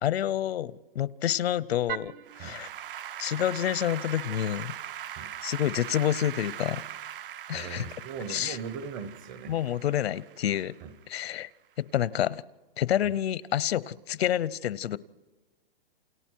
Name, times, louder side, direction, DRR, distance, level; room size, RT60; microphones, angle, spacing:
voice 1, 0.0-2.1 2.4-2.7 3.2-4.8 5.4-6.8 7.5-7.9 8.3-8.6 9.5-10.7 11.1-11.5 11.8-12.4 12.8-15.0, left 11 dB, 80° left, 20 dB, 0.8 m, -28 dB
Applause / Keyboard (musical), 1.9-11.2, right 10 dB, 60° right, 0.8 m, -40 dB
voice 2, 7.5-9.5 10.8-10.9 13.0-13.1, right 6 dB, 20° right, 13 dB, 0.7 m, -39 dB
28.5 x 28.0 x 4.6 m, 1.2 s
hypercardioid pair, 175°, 31 cm